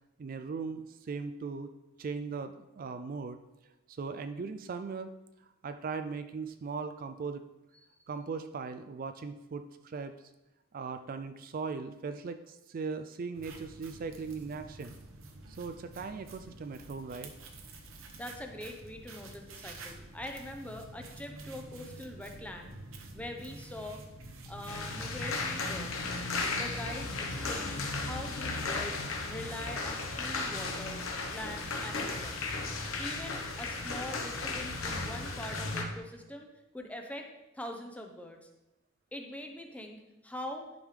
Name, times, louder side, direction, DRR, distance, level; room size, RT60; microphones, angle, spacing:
voice 1, 0.2-1.7 2.0-3.4 3.9-5.1 5.6-7.4 8.1-10.1 10.7-15.0 15.5-17.3, right 4 dB, 45° right, 9 dB, 0.4 m, -39 dB
sound 1, 13.3-25.0, right 2 dB, 80° right, 1.0 m, -49 dB
voice 2, 18.2-22.7 23.1-24.0 24.5-26.2 26.5-31.0 31.3-32.5 33.0-36.5 36.7-37.3 37.5-38.5 39.1-40.0 40.2-40.7, left 1 dB, 5° left, 3 dB, 0.7 m, -43 dB
sound 2, 24.7-35.8, left 3 dB, 85° left, 1.0 m, -35 dB
10.5 x 5.3 x 3.3 m, 0.95 s
head